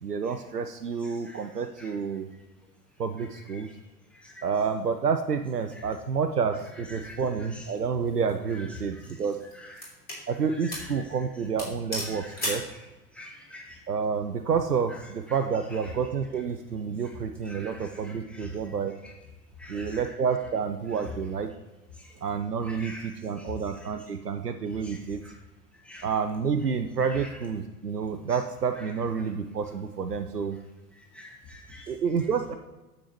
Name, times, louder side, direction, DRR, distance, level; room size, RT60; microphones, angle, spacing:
voice 1, 0.0-2.3 3.0-3.7 4.4-9.4 10.3-12.6 13.9-18.9 19.7-21.5 22.2-25.2 26.0-30.6 31.9-32.5, right 6 dB, 90° right, 6 dB, 0.6 m, -29 dB
sound 1, 8.0-8.3 9.0-10.3 10.7-11.0 11.2-11.3 11.6-12.7, left 1 dB, 20° left, 3.0 m, -35 dB
voice 2, 10.5-10.9 12.1-12.5 13.2-13.6 17.5-17.8 18.0-18.5 19.6-20.0 22.6-23.1 25.9-26.1 27.1-27.3 31.2-31.8, left 2 dB, ahead, 0 dB, 1.5 m, -45 dB
9.3 x 7.3 x 3.0 m, 1.1 s
figure-of-eight pair, 90°, 46 cm